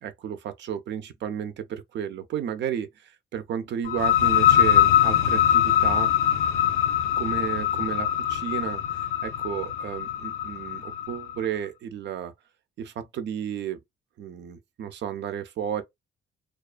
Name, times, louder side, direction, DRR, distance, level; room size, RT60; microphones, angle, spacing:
voice 1, 0.0-6.1 7.2-12.3 12.8-13.8 14.2-15.8, right 9 dB, 65° right, 0.5 m, -33 dB
sound 1, 3.8-11.3, left 10 dB, 85° left, 0.5 m, -22 dB
2.4 x 2.3 x 2.4 m
cardioid pair, 90°, 20 cm